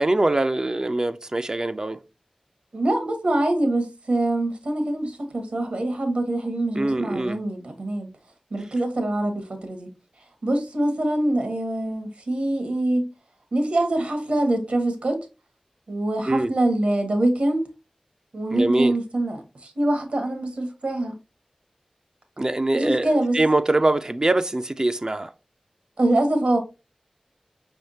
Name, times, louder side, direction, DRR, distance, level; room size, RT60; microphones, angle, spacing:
voice 1, 0.0-2.0 6.8-7.4 16.2-16.5 18.5-19.0 22.4-25.3, right 2 dB, 35° right, 0.4 m, -23 dB
voice 2, 2.7-8.1 8.5-9.9 10.4-13.1 13.5-15.2 15.9-17.6 18.3-21.1 22.7-23.4 26.0-26.6, right 1 dB, 75° right, 1.3 m, -24 dB
5.5 x 3.5 x 2.7 m
wide cardioid pair, 50°, 2 cm